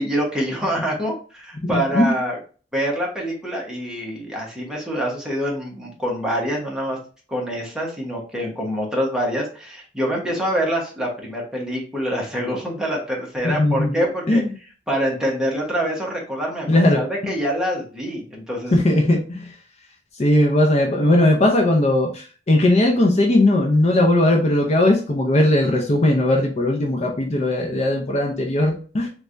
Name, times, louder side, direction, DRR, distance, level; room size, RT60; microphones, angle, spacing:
voice 1, 0.0-2.4 2.7-7.0 7.3-14.4 14.9-18.7, equal, 5° right, -2 dB, 1.0 m, -25 dB
voice 2, 1.6-2.1 13.4-14.5 16.7-17.0 18.7-19.6 20.2-29.1, left 1 dB, 35° left, 1 dB, 0.5 m, -18 dB
3.3 x 3.3 x 2.5 m, 0.39 s
head